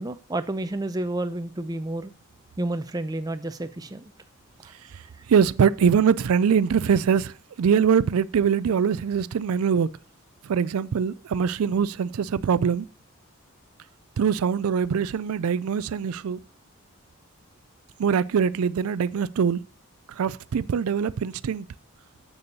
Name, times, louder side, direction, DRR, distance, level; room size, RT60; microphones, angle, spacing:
voice 1, 0.0-2.1 2.6-4.1 4.6-5.2, right 1 dB, 15° right, 0.5 m, -31 dB
voice 2, 5.3-9.9 10.4-12.9 14.2-16.4 18.0-19.6 20.1-21.7, right 7 dB, 90° right, 0.4 m, -23 dB
7.0 x 6.8 x 6.7 m
head